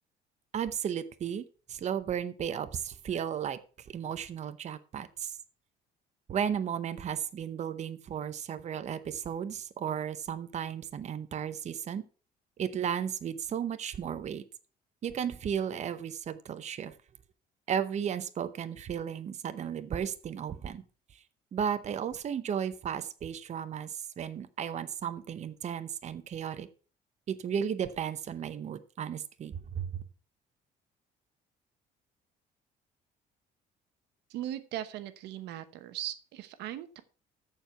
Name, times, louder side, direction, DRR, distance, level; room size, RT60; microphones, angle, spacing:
voice 1, 0.5-3.6 3.9-5.4 6.3-12.0 12.6-14.4 15.0-16.9 17.7-20.8 21.1-21.2 21.5-26.7 27.3-30.0, right 8 dB, 40° right, 11 dB, 0.8 m, -34 dB
voice 2, 34.3-37.0, right 12 dB, 85° right, 12 dB, 1.0 m, -39 dB
13.5 x 4.8 x 5.6 m, 0.38 s
cardioid pair, 110°, 17 cm